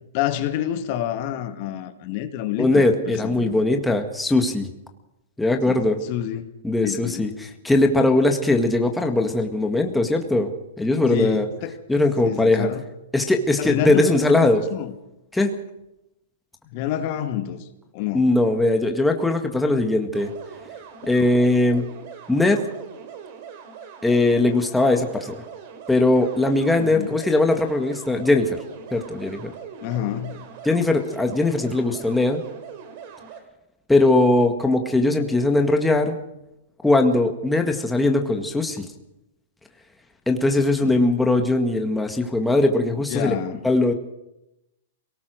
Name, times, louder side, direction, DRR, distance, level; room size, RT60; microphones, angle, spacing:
voice 1, 0.1-3.6 5.7-6.5 6.8-7.3 11.1-11.8 12.2-12.8 13.6-14.4 14.7-14.9 16.7-17.7 17.9-18.2 26.8-27.2 29.8-30.4 40.6-41.0 43.1-43.6, left 11 dB, 45° left, 8 dB, 2.0 m, -28 dB
voice 2, 2.6-4.7 5.4-6.0 6.6-10.5 10.8-11.5 11.9-12.7 13.1-14.6 15.3-15.5 18.1-20.3 21.1-21.9 22.3-22.6 24.0-25.4 25.9-28.6 28.9-29.5 30.6-32.4 33.9-36.2 36.8-38.9 40.3-43.3 43.6-43.9, left 2 dB, 5° left, 4 dB, 1.9 m, -20 dB
sound 1, 20.1-33.4, right 7 dB, 50° right, 3.9 m, -41 dB
22.0 x 18.5 x 6.4 m, 0.89 s
hypercardioid pair, 130°, 0 cm